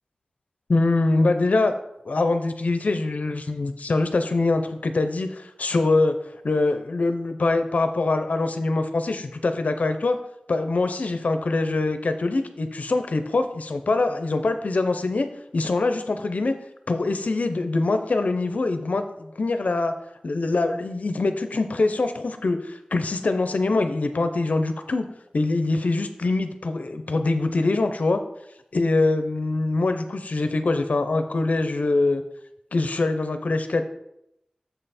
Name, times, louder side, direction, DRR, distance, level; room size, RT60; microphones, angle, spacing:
voice 1, 0.7-6.1 6.4-10.2 10.5-15.3 15.5-16.5 16.9-19.9 20.2-25.1 25.3-28.2 28.7-32.2 32.7-33.8, left 3 dB, 70° left, 8 dB, 0.6 m, -23 dB
7.2 x 5.6 x 4.2 m, 0.80 s
wide cardioid pair, 80°, 3 cm